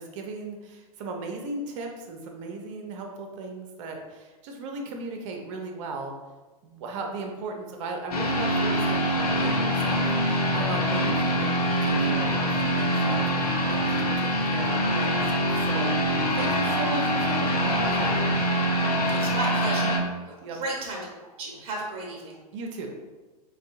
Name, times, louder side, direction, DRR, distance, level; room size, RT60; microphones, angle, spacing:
voice 1, 0.0-6.1 6.6-18.3 20.4-20.6 22.5-22.9, right 3 dB, 50° right, 2 dB, 0.7 m, -37 dB
sound 1, 8.1-20.0, equal, 70° left, 0.7 m, -24 dB
voice 2, 19.1-20.0 20.5-21.0 21.4-22.4, right 2 dB, 30° right, -2 dB, 1.0 m, -33 dB
4.4 x 2.3 x 2.6 m, 1.2 s
figure-of-eight pair, 100°, 20 cm